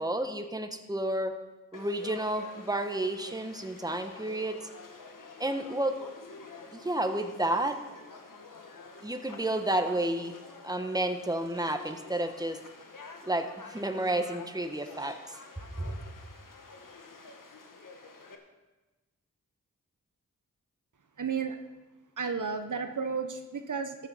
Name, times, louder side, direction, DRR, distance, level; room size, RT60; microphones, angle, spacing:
voice 1, 0.0-1.4 1.7-4.6 5.4-6.0 6.7-7.8 9.0-12.6 13.2-15.2 15.6-16.0, right 1 dB, 10° right, 7 dB, 1.2 m, -31 dB
Conversation / Crowd, 1.7-18.4, left 3 dB, 75° left, 1.5 m, -48 dB
voice 2, 21.2-21.6 22.2-24.1, right 5 dB, 70° right, 7 dB, 1.0 m, -33 dB
14.0 x 8.8 x 5.6 m, 1.1 s
cardioid pair, 45°, 32 cm